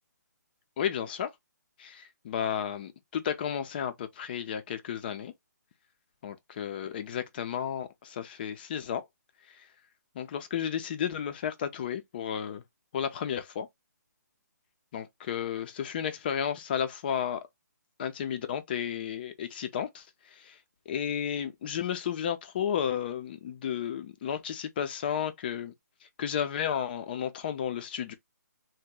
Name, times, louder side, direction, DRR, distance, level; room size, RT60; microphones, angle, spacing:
voice 1, 0.8-1.3 1.8-5.3 6.2-9.0 9.5-9.7 10.1-12.6 12.9-13.7 14.9-17.5 18.0-20.6 20.9-25.7 26.2-28.1, left 8 dB, 30° left, 0.5 m, -33 dB
2.9 x 2.1 x 3.6 m
hypercardioid pair, 155°, 10 cm